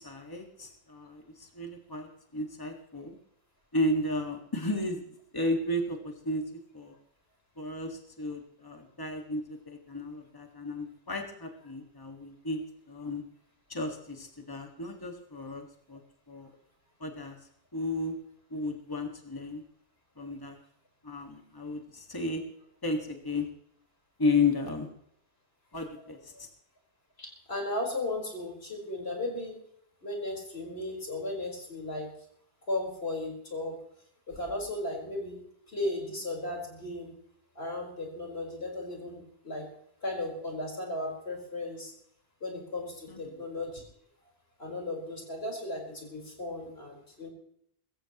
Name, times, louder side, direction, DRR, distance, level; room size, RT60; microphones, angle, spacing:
voice 1, 0.0-3.2 3.7-6.4 6.7-6.9 7.6-13.2 13.7-16.0 16.3-16.5 17.0-17.4 17.7-18.2 18.5-19.6 20.2-20.6 21.0-22.4 22.8-23.5 24.2-24.9 25.7-26.5 43.1-43.4, left 2 dB, 20° left, 3 dB, 1.8 m, -33 dB
voice 2, 27.2-29.5 30.0-32.1 32.7-33.7 34.3-37.1 37.5-39.7 40.0-41.9 42.4-43.8 44.6-47.3, left 2 dB, 75° left, -1 dB, 4.9 m, -35 dB
23.0 x 14.5 x 3.0 m, 0.70 s
omnidirectional pair, 1.1 m